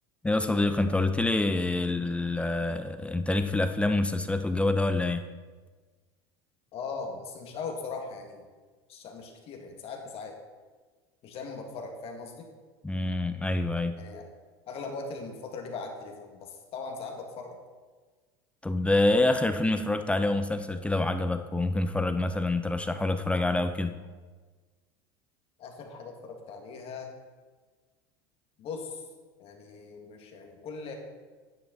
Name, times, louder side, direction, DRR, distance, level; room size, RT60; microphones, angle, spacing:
voice 1, 0.2-5.3 12.8-14.0 18.6-24.0, left 2 dB, 10° left, 9 dB, 0.5 m, -26 dB
voice 2, 6.7-8.5 8.9-10.4 11.2-12.5 14.0-14.3 14.7-17.6 25.6-27.1 28.6-29.0 29.4-30.9, left 4 dB, 50° left, 2 dB, 2.0 m, -39 dB
9.8 x 9.0 x 4.1 m, 1.4 s
hypercardioid pair, 95°, 13 cm